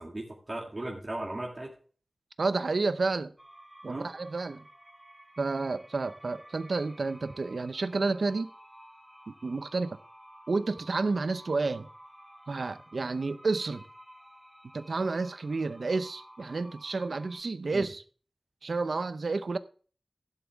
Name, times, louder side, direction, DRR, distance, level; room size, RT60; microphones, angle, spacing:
voice 1, 0.0-1.7 3.9-4.1 17.7-17.9, right 1 dB, 40° right, 2.0 m, -37 dB
voice 2, 2.4-3.3 3.8-4.6 5.4-8.5 9.4-10.0 10.5-11.9 12.5-13.8 14.7-18.0 18.6-19.6, right 3 dB, 80° right, 0.7 m, -30 dB
sound 1, 3.4-17.4, equal, 10° right, 2.7 m, -53 dB
12.5 x 10.5 x 3.5 m
wide cardioid pair, 70°, 0 cm